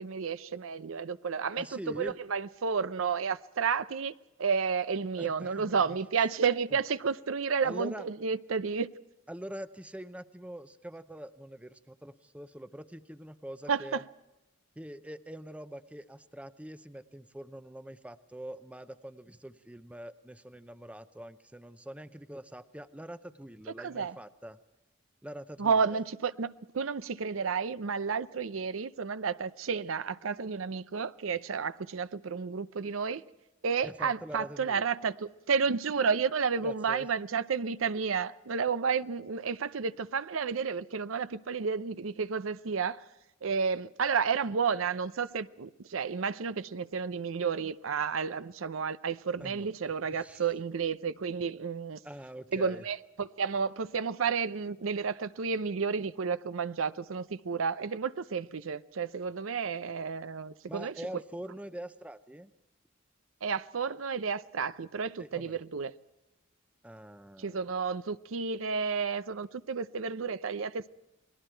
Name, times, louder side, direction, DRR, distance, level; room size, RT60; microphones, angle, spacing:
voice 1, 0.0-4.1 4.4-8.9 13.7-14.0 23.8-24.1 25.6-33.2 33.6-43.0 43.4-52.0 52.5-60.9 63.4-65.9 67.4-70.9, right 5 dB, 90° right, 0.6 m, -31 dB
voice 2, 1.6-2.2 5.2-6.0 7.6-8.1 9.3-14.0 14.8-24.6 25.2-26.0 33.8-34.8 36.6-37.1 49.4-49.7 50.1-50.5 52.0-52.8 60.7-62.5 65.2-65.6 66.8-67.6, right 1 dB, 5° right, 0.6 m, -44 dB
29.0 x 20.5 x 4.5 m
head